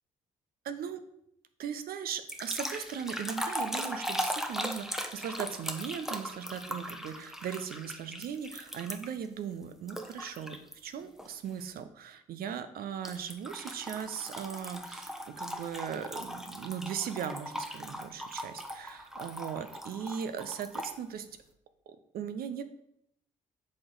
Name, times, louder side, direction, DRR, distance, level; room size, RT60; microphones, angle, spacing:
voice 1, 0.6-1.0 1.6-15.1 15.4-21.3 21.9-22.6, right 8 dB, 55° right, 10 dB, 0.7 m, -38 dB
sound 1, 2.3-9.3 9.9-10.7 11.2-11.5 13.0-21.0, equal, ahead, 0.9 m, -39 dB
7.5 x 4.4 x 3.9 m, 0.75 s
hypercardioid pair, 45°, 18 cm